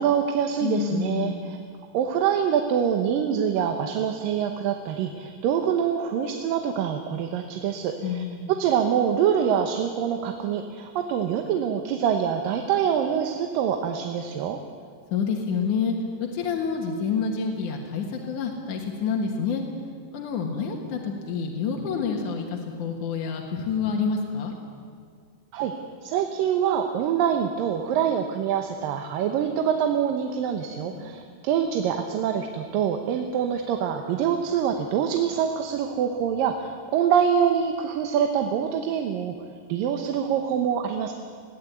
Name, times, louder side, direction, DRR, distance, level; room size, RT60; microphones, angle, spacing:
voice 1, 0.0-1.6 1.9-8.2 8.5-14.6 25.5-25.7 26.0-39.3 39.7-41.1, right 8 dB, 85° right, 5 dB, 2.7 m, -25 dB
voice 2, 0.6-1.6 8.0-8.5 15.1-19.6 20.1-24.5 30.9-31.3, left 5 dB, 70° left, 0 dB, 2.9 m, -28 dB
21.0 x 15.5 x 9.5 m, 2.1 s
omnidirectional pair, 3.9 m